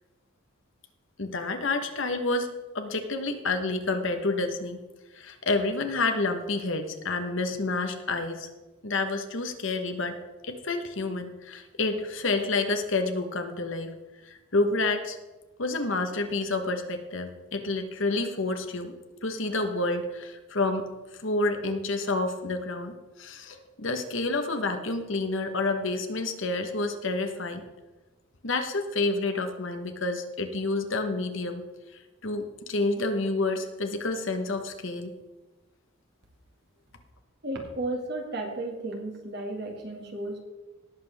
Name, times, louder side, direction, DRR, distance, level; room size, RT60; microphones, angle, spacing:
voice 1, 1.2-2.5 2.7-4.8 5.1-8.5 8.8-10.2 10.4-13.9 14.2-15.2 15.6-18.9 19.2-27.6 28.4-31.6 31.9-35.1, left 2 dB, 60° left, 6 dB, 1.3 m, -29 dB
voice 2, 37.4-40.4, right 2 dB, 50° right, 1 dB, 2.2 m, -34 dB
18.5 x 7.5 x 3.6 m, 1.1 s
head